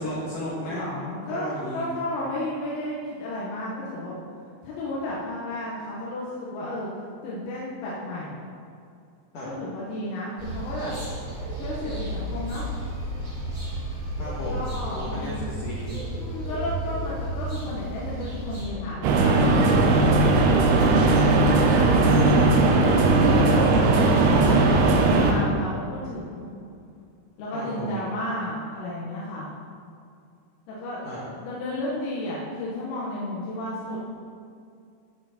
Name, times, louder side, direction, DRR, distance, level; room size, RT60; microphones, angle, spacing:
voice 1, 0.0-1.9 9.3-9.5 14.2-14.7 14.9-15.9 20.7-20.9 27.5-28.0 31.0-31.2, left 1 dB, 60° left, -7 dB, 2.3 m, -34 dB
voice 2, 0.7-4.2 4.6-6.9 7.2-8.4 9.4-11.0 11.6-12.7 14.3-15.4 16.2-19.8 20.9-26.5 27.4-29.5 30.7-31.0 31.4-34.0, left 1 dB, 90° left, -7 dB, 4.1 m, -33 dB
sound 1, 10.4-18.6, right 1 dB, 25° right, 2.2 m, -32 dB
sound 2, 19.0-25.3, right 2 dB, 80° right, 3.4 m, -18 dB
17.5 x 5.9 x 4.4 m, 2.4 s
omnidirectional pair, 5.7 m